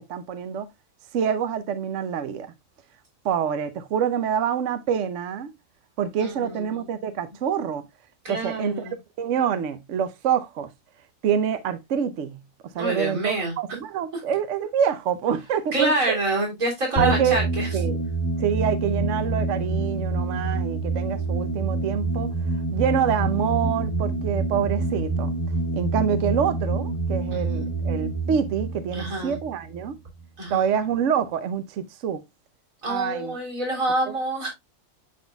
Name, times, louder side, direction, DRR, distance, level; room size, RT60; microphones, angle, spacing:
voice 1, 0.1-0.7 1.1-2.5 3.2-5.5 6.0-7.9 8.3-8.9 9.2-10.7 11.2-16.2 17.0-17.4 17.7-18.0 18.4-22.3 22.7-25.3 25.7-30.0 30.5-32.2 32.9-33.4 34.1-34.2, right 8 dB, 65° right, 1.0 m, -26 dB
voice 2, 6.2-6.8 8.2-9.0 12.8-13.5 15.7-17.7 27.3-27.7 28.9-29.4 30.4-30.7 32.8-34.5, right 1 dB, 80° right, 3.9 m, -27 dB
sound 1, 17.0-30.2, right 2 dB, 35° right, 2.4 m, -27 dB
10.5 x 4.0 x 2.2 m
omnidirectional pair, 1.4 m